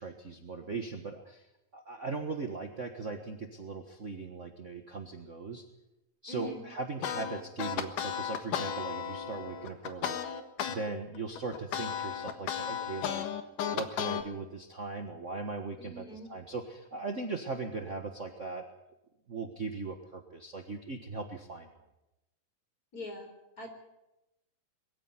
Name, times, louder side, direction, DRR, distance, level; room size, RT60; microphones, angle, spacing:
voice 1, 0.0-1.5 1.7-5.6 6.2-10.4 10.7-13.2 13.7-18.7 19.3-21.7, right 4 dB, 50° right, 4 dB, 0.9 m, -39 dB
voice 2, 6.3-6.7 15.8-16.3 22.9-23.7, left 1 dB, 25° left, 4 dB, 4.7 m, -43 dB
sound 1, 7.0-10.8 11.1-14.2, left 8 dB, 75° left, 3.0 m, -34 dB
22.5 x 15.0 x 9.7 m, 0.94 s
omnidirectional pair, 3.7 m